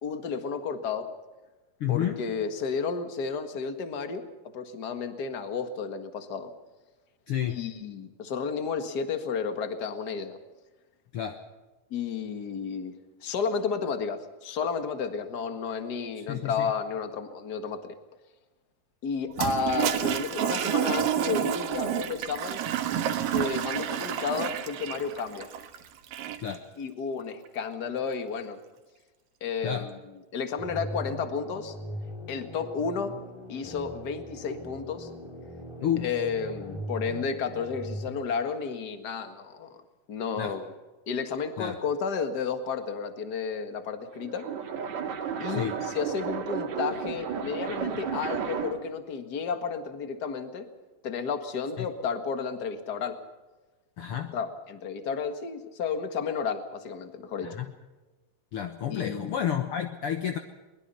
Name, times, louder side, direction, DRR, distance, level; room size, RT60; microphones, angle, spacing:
voice 1, 0.0-1.1 1.9-4.2 4.5-6.5 7.5-10.4 11.9-12.9 13.2-17.8 19.0-22.6 23.3-25.5 26.8-28.6 29.4-29.9 30.3-31.7 32.3-33.2 33.5-35.1 36.0-39.8 40.1-40.7 41.1-44.5 45.4-50.7 51.0-53.2 54.3-57.5 58.9-59.3, left 5 dB, 40° left, 8 dB, 1.5 m, -32 dB
voice 2, 1.8-2.3 7.3-7.6 11.1-11.4 16.1-16.7 26.4-26.6 29.6-29.9 35.8-36.1 40.4-40.5 41.6-41.8 45.5-45.7 51.8-51.9 54.0-54.3 57.4-57.7 58.5-60.4, left 9 dB, 65° left, 6 dB, 1.4 m, -30 dB
Toilet flush, 19.3-26.6, right 10 dB, 75° right, 3.0 m, -29 dB
sound 1, 30.6-38.1, equal, 5° left, 4.9 m, -40 dB
sound 2, 44.0-48.9, right 7 dB, 55° right, 3.0 m, -33 dB
22.5 x 21.5 x 5.6 m, 1.2 s
omnidirectional pair, 4.1 m